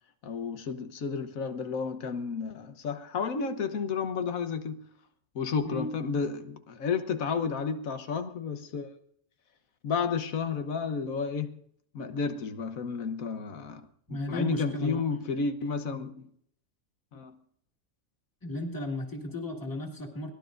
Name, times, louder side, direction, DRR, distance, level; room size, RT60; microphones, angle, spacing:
voice 1, 0.2-4.8 5.3-8.9 9.8-11.6 11.9-16.3 17.1-17.4, left 5 dB, 85° left, 1.5 m, -32 dB
voice 2, 5.6-6.0 14.1-15.0 18.4-20.3, left 1 dB, 15° left, 2.0 m, -34 dB
23.0 x 17.5 x 2.6 m
omnidirectional pair, 1.4 m